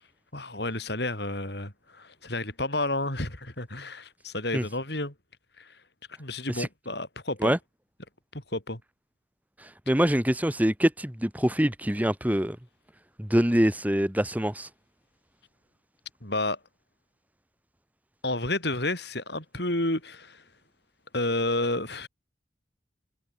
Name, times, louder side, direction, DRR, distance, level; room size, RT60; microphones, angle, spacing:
voice 1, 0.3-5.1 5.6-5.8 6.2-7.5 8.3-8.8 16.2-16.6 18.2-20.4 21.1-22.1, left 2 dB, 60° left, 6.2 m, -31 dB
voice 2, 9.6-12.6 13.2-14.7, equal, 10° right, 1.5 m, -24 dB
head